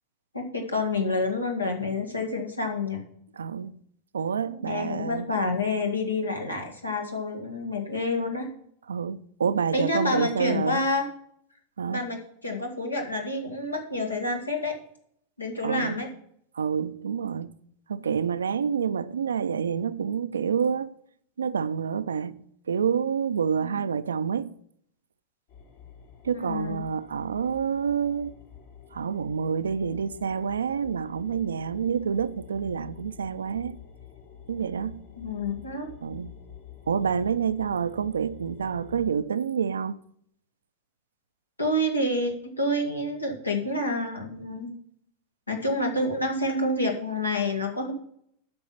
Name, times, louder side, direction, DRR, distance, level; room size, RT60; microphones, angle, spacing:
voice 1, 0.3-3.0 4.5-8.5 9.7-11.1 11.9-14.8 15.4-16.1 23.6-23.9 26.3-26.9 35.2-35.9 41.6-44.7 45.5-47.9, left 2 dB, 85° left, 1.7 m, -28 dB
voice 2, 3.4-3.7 4.1-5.3 8.9-10.8 11.8-12.0 15.6-16.0 16.6-17.5 17.9-20.9 21.4-24.5 26.2-28.3 28.9-33.8 34.5-35.0 36.0-36.3 36.9-40.0, right 7 dB, 70° right, 0.4 m, -28 dB
sound 1, 25.5-39.1, left 8 dB, 55° left, 2.0 m, -48 dB
8.7 x 6.1 x 5.7 m
figure-of-eight pair, 90°, 0 cm